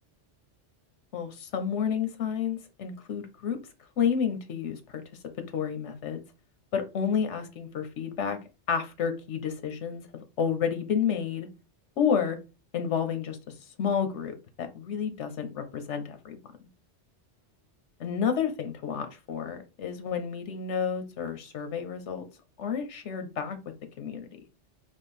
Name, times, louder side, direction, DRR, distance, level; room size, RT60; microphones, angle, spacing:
voice 1, 1.1-3.6 4.0-4.8 5.5-6.2 6.7-8.4 8.7-11.5 12.0-12.4 12.7-13.4 13.8-16.4 18.0-22.2 22.6-23.6 24.0-24.3, left 7 dB, 90° left, 8 dB, 1.1 m, -30 dB
3.7 x 3.0 x 4.2 m, 0.29 s
omnidirectional pair, 1.2 m